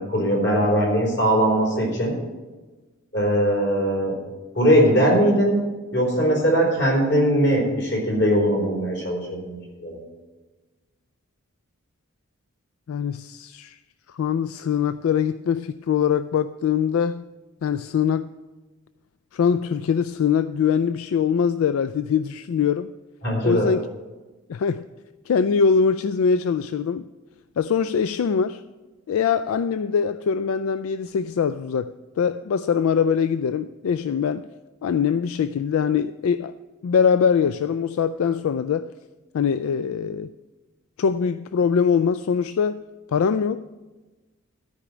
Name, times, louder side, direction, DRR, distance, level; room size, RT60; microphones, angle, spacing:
voice 1, 0.0-2.1 3.1-4.1 4.5-5.6 5.9-10.0 23.2-23.7, equal, 60° left, 4.3 m, -20 dB
voice 2, 12.9-13.8 14.1-17.2 17.6-18.3 19.3-22.9 23.4-23.9 24.5-24.9 25.3-27.1 27.6-28.6 29.1-34.5 34.8-36.5 36.8-38.9 39.3-40.3 41.0-42.8 43.1-43.7, left 6 dB, 90° left, 0.3 m, -22 dB
13.0 x 5.1 x 8.7 m
head